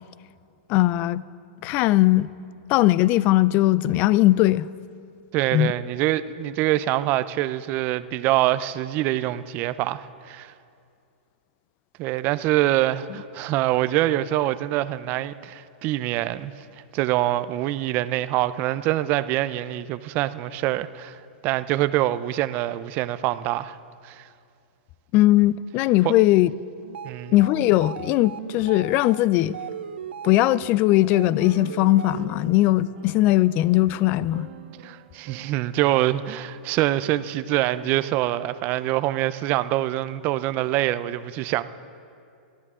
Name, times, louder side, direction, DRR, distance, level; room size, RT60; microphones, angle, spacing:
voice 1, 0.7-1.2 1.6-2.3 2.7-4.7 5.5-5.7 25.1-26.5 27.3-29.6 30.2-34.5, left 16 dB, 35° left, 0.3 m, -19 dB
voice 2, 5.3-10.5 12.0-16.5 16.9-21.2 21.4-23.8 24.0-24.3 26.0-26.1 27.0-27.3 34.8-41.6, right 15 dB, 35° right, 0.5 m, -25 dB
sound 1, 26.8-32.6, right 8 dB, 85° right, 0.5 m, -38 dB
sound 2, 31.1-38.0, right 10 dB, 55° right, 1.1 m, -47 dB
28.0 x 12.5 x 3.7 m
hypercardioid pair, 145°, 6 cm